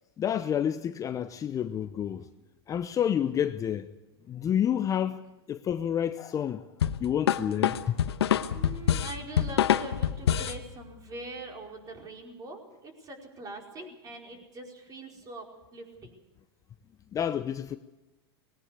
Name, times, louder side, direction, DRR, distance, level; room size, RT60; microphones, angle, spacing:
voice 1, 0.2-2.3 2.7-3.9 4.3-5.2 5.5-6.6 7.0-7.9 17.1-17.8, left 9 dB, 25° left, 0.7 m, -29 dB
sound 1, 6.8-10.6, left 10 dB, 80° left, 1.1 m, -26 dB
voice 2, 8.5-15.4 15.7-16.2, right 2 dB, 25° right, 4.9 m, -43 dB
20.0 x 18.0 x 8.3 m
hypercardioid pair, 110°, 14 cm